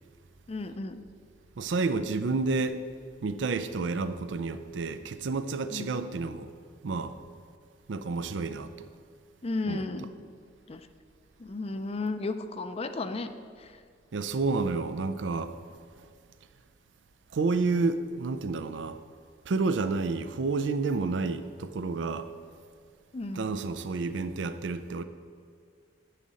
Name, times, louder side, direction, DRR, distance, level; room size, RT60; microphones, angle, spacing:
voice 1, 0.5-1.0 5.7-5.9 9.4-10.1 10.7-10.9 11.4-13.3 13.6-13.8 23.1-23.5, left 3 dB, 35° left, 0.4 m, -34 dB
voice 2, 1.6-2.8 3.2-6.5 6.8-7.1 7.9-8.9 9.7-9.8 14.1-15.5 17.3-19.0 19.5-22.3 23.3-25.0, right 3 dB, 80° right, 0.5 m, -30 dB
9.9 x 4.0 x 7.5 m
head